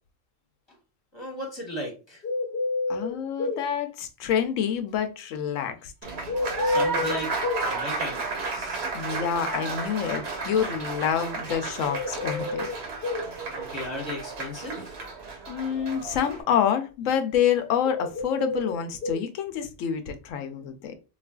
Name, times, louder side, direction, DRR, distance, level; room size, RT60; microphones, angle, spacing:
voice 1, 1.1-2.2 6.6-8.8 13.5-15.0, left 1 dB, 20° left, 1.1 m, -36 dB
sound 1, 2.2-3.6 6.3-7.7 11.9-13.3 17.8-19.2, left 3 dB, 50° left, 0.8 m, -29 dB
voice 2, 2.9-5.9 8.9-12.7 15.5-21.0, left 8 dB, 80° left, 1.0 m, -27 dB
Applause, 6.0-16.4, right 3 dB, 60° right, 1.1 m, -33 dB
3.9 x 2.4 x 2.2 m
omnidirectional pair, 1.3 m